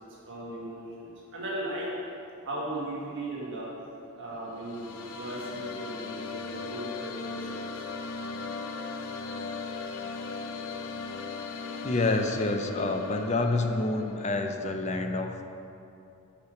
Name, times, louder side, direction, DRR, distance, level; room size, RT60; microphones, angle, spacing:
voice 1, 0.3-1.9 2.4-3.7 4.2-7.6 9.6-9.7, right 1 dB, 55° right, -6 dB, 1.7 m, -37 dB
sound 1, 4.4-14.6, left 4 dB, 85° left, 0.5 m, -38 dB
voice 2, 11.8-15.4, left 2 dB, 30° left, 5 dB, 0.5 m, -28 dB
6.1 x 5.7 x 6.4 m, 2.7 s
head